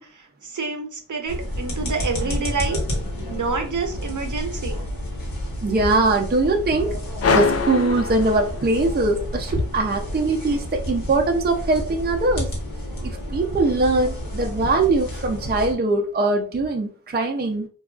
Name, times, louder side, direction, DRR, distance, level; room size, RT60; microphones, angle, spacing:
voice 1, 0.4-2.8 3.3-4.9, right 4 dB, 60° right, 4 dB, 0.7 m, -28 dB
sound 1, 1.3-15.7, left 1 dB, 80° left, 1.2 m, -30 dB
voice 2, 5.6-7.0 7.3-12.5 13.0-17.7, right 2 dB, 30° right, 3 dB, 0.5 m, -21 dB
sound 2, 7.2-9.0, left 4 dB, 45° left, 0.4 m, -23 dB
3.4 x 2.3 x 2.3 m, 0.41 s
cardioid pair, 40°, 34 cm